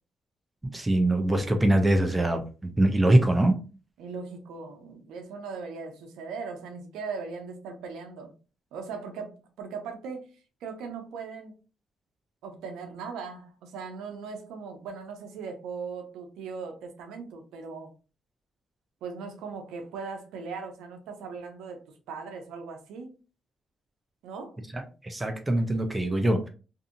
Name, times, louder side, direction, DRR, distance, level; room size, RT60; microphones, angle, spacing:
voice 1, 0.6-3.5 24.7-26.5, right 1 dB, 15° right, 5 dB, 0.6 m, -23 dB
voice 2, 4.0-8.3 8.7-10.3 10.6-11.6 12.4-17.9 19.0-23.2 24.2-24.6, right 5 dB, 90° right, 5 dB, 0.6 m, -39 dB
2.6 x 2.6 x 2.5 m, 0.34 s
cardioid pair, 90°, 0 cm